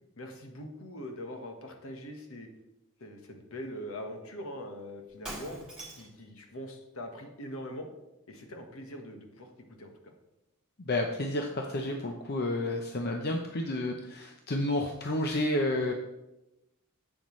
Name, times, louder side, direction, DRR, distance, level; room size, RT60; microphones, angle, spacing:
voice 1, 0.2-2.5 3.0-5.6 6.0-7.9 8.3-9.5 9.8-10.1, equal, 65° left, 4 dB, 1.4 m, -42 dB
Shatter, 5.2-6.2, right 1 dB, 5° right, 3.0 m, -42 dB
voice 2, 10.8-15.9, left 1 dB, 45° left, 2 dB, 0.7 m, -30 dB
11.0 x 7.8 x 3.2 m, 0.95 s
head